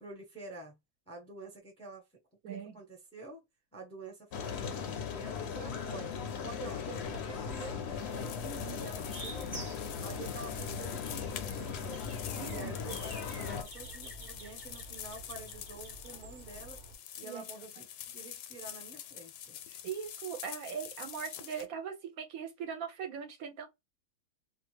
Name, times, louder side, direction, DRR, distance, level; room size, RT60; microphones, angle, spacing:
voice 1, 0.0-0.8 1.1-2.0 2.5-3.4 3.7-9.6 10.0-12.0 12.4-16.8 17.2-19.6, right 3 dB, 5° left, 0.6 m, -48 dB
sound 1, 4.3-13.6, left 7 dB, 60° left, 0.7 m, -38 dB
sound 2, 7.0-16.9, right 3 dB, 40° right, 0.8 m, -49 dB
sound 3, 8.0-21.7, left 10 dB, 80° left, 1.1 m, -46 dB
voice 2, 8.2-8.9 12.4-12.7 17.2-17.5 19.7-23.7, right 7 dB, 70° right, 1.0 m, -41 dB
2.6 x 2.3 x 3.1 m
omnidirectional pair, 1.7 m